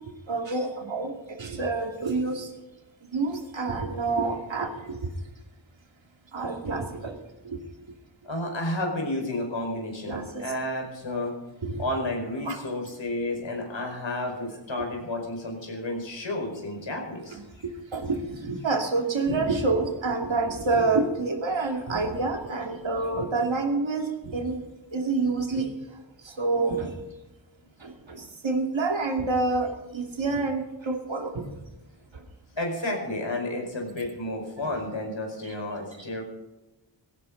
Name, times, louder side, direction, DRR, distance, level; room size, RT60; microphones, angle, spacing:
voice 1, 0.3-1.1 1.4-2.5 3.1-5.1 6.3-7.2 7.4-7.6 10.1-10.5 11.6-11.8 12.4-12.6 14.8-14.9 17.3-24.6 24.9-25.7 26.2-26.9 27.8-31.5 32.1-32.2 34.6-34.8 35.4-35.5, right 3 dB, 85° right, 3 dB, 2.6 m, -28 dB
voice 2, 8.2-11.3 11.8-17.4 32.6-36.2, left 1 dB, 85° left, 1 dB, 5.2 m, -31 dB
17.0 x 17.0 x 4.0 m, 1.0 s
wide cardioid pair, 60°, 44 cm